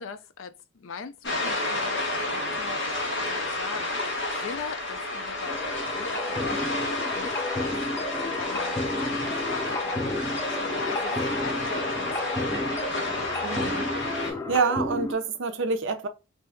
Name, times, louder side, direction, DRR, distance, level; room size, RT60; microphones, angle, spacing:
voice 1, 0.0-6.8 7.1-10.0 10.5-12.5, left 5 dB, 75° left, 0.4 m, -41 dB
sound 1, 1.2-14.3, left 2 dB, 60° left, 1.1 m, -30 dB
sound 2, 5.4-15.2, left 2 dB, 10° left, 0.4 m, -32 dB
voice 2, 13.4-13.9 14.2-16.1, right 4 dB, 65° right, 0.5 m, -27 dB
2.7 x 2.2 x 3.5 m
head